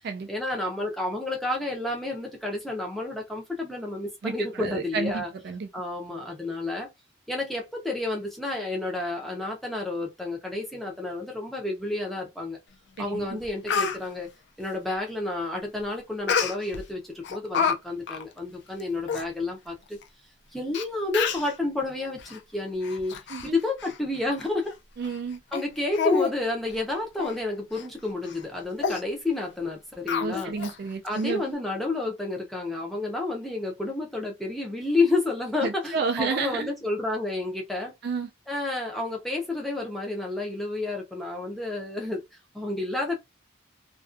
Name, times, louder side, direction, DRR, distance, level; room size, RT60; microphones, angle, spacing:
voice 1, 0.3-5.3 5.7-6.9 7.3-12.6 13.0-14.3 14.6-20.0 20.5-23.1 23.4-24.7 25.5-30.5 31.0-37.9 38.5-42.2 42.5-43.2, left 2 dB, ahead, 0.5 m, -30 dB
voice 2, 4.2-5.7 13.1-13.4 23.3-23.5 25.0-25.4 30.2-31.4 35.6-36.7 38.0-38.3, right 5 dB, 50° right, 0.3 m, -31 dB
Speech, 13.0-13.1 13.4-14.0 16.3-16.8 17.2-17.8 18.1-18.2 18.8-18.9 19.1-19.2 20.0-20.1 20.7-20.8 21.1-21.5 22.2-22.4 22.8-23.5 23.8-24.0 24.4-24.5 25.0-25.2 25.5-25.6 25.9-26.3 26.7-26.8 27.2-27.4 27.7-27.9 28.3-28.4 28.8-29.0 30.1-30.7 31.1-31.2, left 6 dB, 55° left, 0.4 m, -28 dB
2.4 x 2.2 x 2.4 m
head